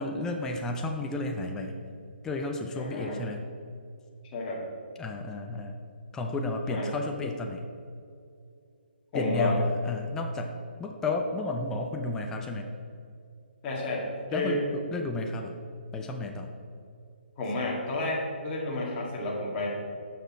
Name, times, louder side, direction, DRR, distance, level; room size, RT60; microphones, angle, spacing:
voice 1, 0.0-1.8 2.2-3.5 5.0-5.8 6.1-7.7 9.1-12.7 14.3-15.6 15.9-16.5, left 2 dB, 10° left, 3 dB, 0.4 m, -32 dB
voice 2, 2.7-3.2 4.3-4.6 6.7-6.9 9.1-9.6 13.6-14.1 14.3-14.6 17.4-19.7, left 2 dB, 25° left, -4 dB, 1.9 m, -30 dB
9.1 x 6.1 x 4.2 m, 2.4 s
hypercardioid pair, 150°, 6 cm